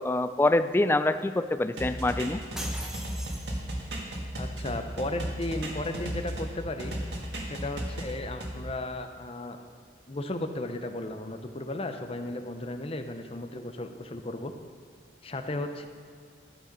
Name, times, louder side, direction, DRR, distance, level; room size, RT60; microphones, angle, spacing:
voice 1, 0.0-2.4, left 2 dB, 15° left, 11 dB, 0.3 m, -25 dB
sound 1, 1.8-6.5 6.8-8.5, right 1 dB, 75° right, 1.9 m, -34 dB
sound 2, 2.6-4.0, equal, 5° right, 0.8 m, -41 dB
voice 2, 4.4-7.0 7.5-9.6 10.1-14.5 15.2-15.9, left 2 dB, 35° left, 7 dB, 0.7 m, -35 dB
12.5 x 7.6 x 5.3 m, 2.1 s
head